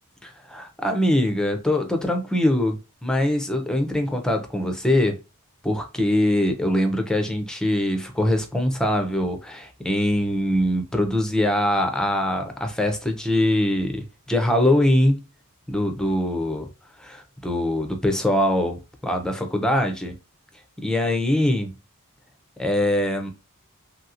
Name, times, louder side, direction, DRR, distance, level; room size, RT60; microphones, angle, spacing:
voice 1, 0.2-5.2 5.6-15.2 15.7-16.7 17.0-20.1 20.8-21.7 22.6-23.3, left 1 dB, 5° left, 0.5 m, -23 dB
3.0 x 2.8 x 2.5 m
head